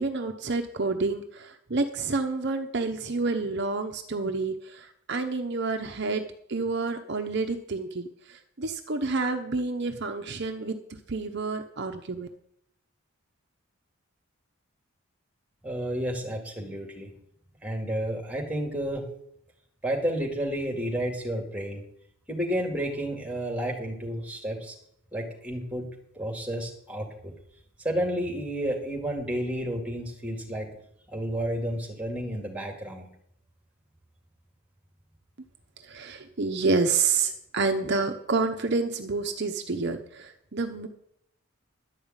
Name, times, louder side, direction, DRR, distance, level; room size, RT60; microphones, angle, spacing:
voice 1, 0.0-6.2 6.5-12.3 35.8-40.9, right 3 dB, 50° right, 5 dB, 0.8 m, -29 dB
voice 2, 15.6-17.1 17.6-19.1 19.8-21.8 22.3-24.7 25.1-25.9 26.2-27.3 27.8-30.7 31.1-33.1, right 1 dB, 5° right, 1 dB, 2.2 m, -31 dB
11.5 x 5.5 x 8.8 m, 0.71 s
head